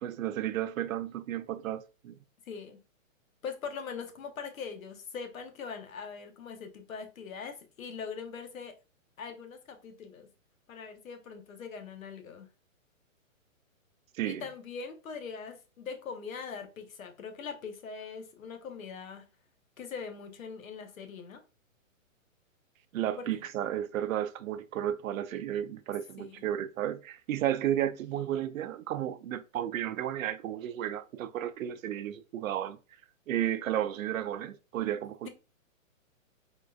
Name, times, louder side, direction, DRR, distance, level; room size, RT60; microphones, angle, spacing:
voice 1, 0.0-2.2 14.1-14.4 22.9-32.8 33.3-35.3, right 11 dB, 80° right, 0.5 m, -33 dB
voice 2, 2.4-2.8 3.4-8.8 9.2-10.3 10.7-12.5 14.3-19.3 19.8-21.4 23.2-23.4 26.2-26.5, left 5 dB, 85° left, 0.9 m, -42 dB
3.6 x 2.5 x 2.3 m
hypercardioid pair, 170°, 40 cm